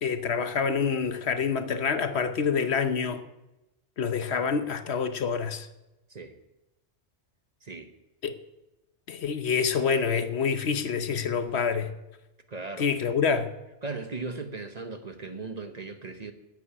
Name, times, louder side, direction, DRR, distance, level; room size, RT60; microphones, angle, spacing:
voice 1, 0.0-3.2 4.0-5.7 8.2-8.4 9.1-11.9 12.8-13.5, left 6 dB, 65° left, 10 dB, 1.1 m, -27 dB
voice 2, 7.6-7.9 12.5-12.9 13.8-16.3, right 3 dB, 35° right, 7 dB, 1.0 m, -37 dB
11.0 x 8.5 x 8.5 m, 0.98 s
omnidirectional pair, 1.2 m